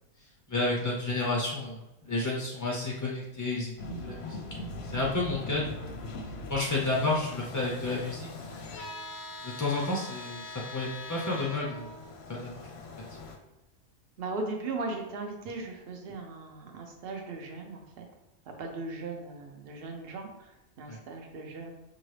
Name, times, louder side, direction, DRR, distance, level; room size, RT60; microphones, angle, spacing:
voice 1, 0.5-3.7 4.0-6.0 6.5-8.6 9.4-11.9 12.3-12.6 20.9-21.0, left 2 dB, 30° left, -3 dB, 0.3 m, -31 dB
sound 1, 3.8-13.4, left 2 dB, 60° left, 0.8 m, -41 dB
voice 2, 14.2-18.1 18.6-21.7, right 3 dB, 50° right, 2 dB, 0.9 m, -38 dB
5.7 x 2.6 x 3.2 m, 0.98 s
omnidirectional pair, 1.4 m